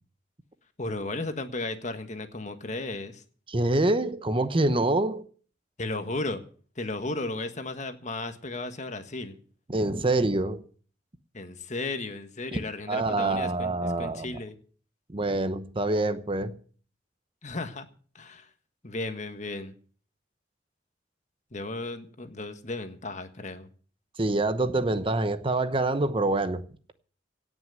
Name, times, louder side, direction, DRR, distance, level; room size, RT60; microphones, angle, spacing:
voice 1, 0.8-3.2 5.8-6.4 6.8-9.4 11.3-14.6 17.4-17.9 18.1-18.5 18.8-19.7 21.5-23.7, left 2 dB, 40° left, 1.6 m, -34 dB
voice 2, 3.5-5.2 9.7-10.6 12.9-14.3 15.1-16.5 24.2-26.6, right 2 dB, 30° right, 0.9 m, -26 dB
17.5 x 6.2 x 9.3 m
head